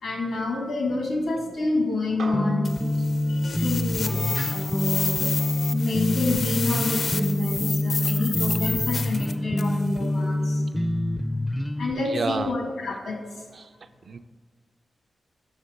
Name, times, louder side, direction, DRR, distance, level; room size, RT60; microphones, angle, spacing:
voice 1, 0.0-2.7 3.3-5.3 5.7-10.6 11.8-13.2, left 3 dB, 85° left, 1 dB, 1.8 m, -28 dB
sound 1, 2.2-6.8, right 3 dB, 90° right, 0.8 m, -43 dB
sound 2, 2.3-11.9, left 1 dB, 15° left, 0.4 m, -26 dB
sound 3, 2.6-9.8, left 4 dB, 65° left, 0.6 m, -30 dB
voice 2, 12.0-12.6 13.5-13.7 14.1-14.2, right 4 dB, 55° right, 10 dB, 0.4 m, -30 dB
7.2 x 6.0 x 5.2 m, 1.5 s
cardioid pair, 85°, 0 cm